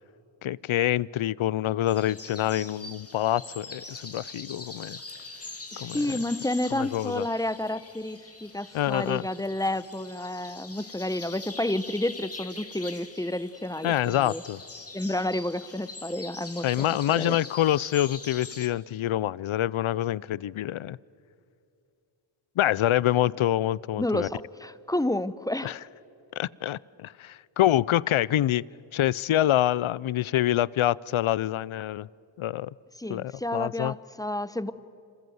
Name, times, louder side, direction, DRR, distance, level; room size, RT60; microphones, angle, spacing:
voice 1, 0.4-5.0 5.8-6.2 6.8-7.2 8.7-9.3 13.8-14.6 16.6-21.0 22.6-24.3 25.6-25.7 26.4-28.6 28.9-32.1 32.4-32.7 33.1-33.9, left 13 dB, 80° left, 23 dB, 0.6 m, -26 dB
sound 1, 1.9-18.7, left 3 dB, 30° left, 2.2 m, -43 dB
voice 2, 5.7-14.4 14.9-17.4 24.0-25.8 33.0-34.7, left 1 dB, 5° left, 14 dB, 0.9 m, -30 dB
27.5 x 27.0 x 7.9 m, 2.6 s
cardioid pair, 65°, 48 cm